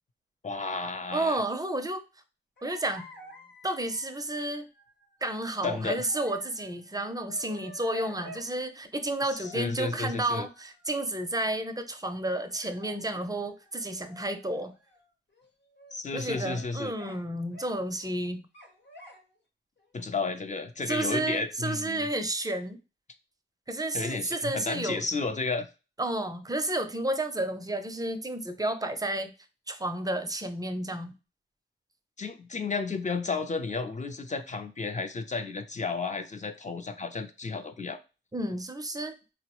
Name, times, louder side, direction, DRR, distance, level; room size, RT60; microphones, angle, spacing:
voice 1, 0.4-1.4 5.6-6.1 9.3-10.5 15.9-16.9 19.9-22.1 23.9-25.7 32.2-38.0, left 4 dB, 35° left, 7 dB, 0.5 m, -32 dB
voice 2, 1.1-2.0 2.6-3.1 3.6-4.7 5.2-14.7 16.1-18.4 20.9-22.8 23.7-25.0 26.0-29.3 29.7-31.1 38.3-39.1, right 1 dB, 20° right, 8 dB, 0.5 m, -31 dB
sound 1, 2.6-8.5 9.3-10.9 12.5-15.0 15.3-15.9 16.2-17.2 17.5-18.2 18.5-19.4 19.8-20.2, equal, 60° left, 1.0 m, -51 dB
3.7 x 2.0 x 2.9 m, 0.30 s
wide cardioid pair, 80°, 21 cm